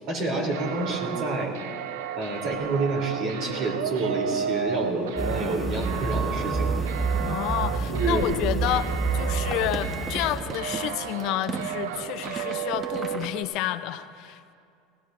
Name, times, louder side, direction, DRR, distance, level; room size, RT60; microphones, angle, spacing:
voice 1, 0.1-1.5 2.1-6.7 7.9-8.7, right 2 dB, 55° right, 0 dB, 3.0 m, -28 dB
sound 1, 0.5-13.4, right 9 dB, 85° right, 0.5 m, -33 dB
sound 2, 4.8-4.9 5.5-5.6 5.8-6.1 6.3-6.5 6.9-13.3, right 4 dB, 30° right, 1.1 m, -38 dB
sound 3, 5.2-10.4, right 3 dB, 5° right, 4.0 m, -28 dB
voice 2, 7.2-14.5, left 13 dB, 60° left, 12 dB, 0.5 m, -30 dB
19.5 x 17.5 x 2.5 m, 2.4 s
supercardioid pair, 110°, 0 cm